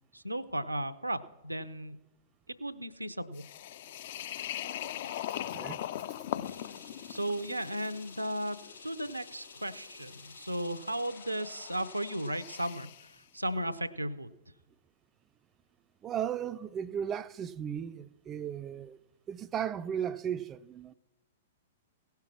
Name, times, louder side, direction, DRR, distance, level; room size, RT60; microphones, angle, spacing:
voice 1, 0.1-2.0 2.6-3.4 7.1-8.6 8.8-12.9 13.3-14.3, right 1 dB, 85° right, 0.6 m, -35 dB
sound 1, 3.3-13.1, left 12 dB, 50° left, 0.4 m, -41 dB
voice 2, 5.4-6.0 6.3-6.8 16.0-19.0 19.3-20.9, right 9 dB, 20° right, 0.3 m, -36 dB
sound 2, 6.4-12.3, left 4 dB, 75° left, 2.5 m, -52 dB
17.0 x 5.8 x 6.1 m
figure-of-eight pair, 105°, 0 cm